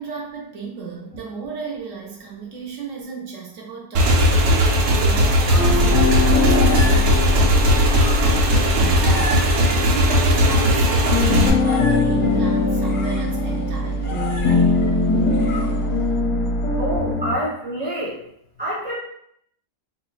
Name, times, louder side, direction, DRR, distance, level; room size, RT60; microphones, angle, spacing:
voice 1, 0.0-14.3, right 5 dB, 60° right, -2 dB, 0.9 m, -35 dB
Motorcycle / Engine, 4.0-11.5, equal, 90° right, 1.3 m, -17 dB
sound 1, 5.0-16.2, left 2 dB, 85° left, 1.3 m, -35 dB
sound 2, 5.6-10.8 11.1-17.4, left 3 dB, 65° left, 0.9 m, -21 dB
voice 2, 16.7-18.2 18.6-19.0, equal, 10° left, -7 dB, 0.6 m, -27 dB
3.8 x 2.1 x 2.3 m, 0.72 s
omnidirectional pair, 1.9 m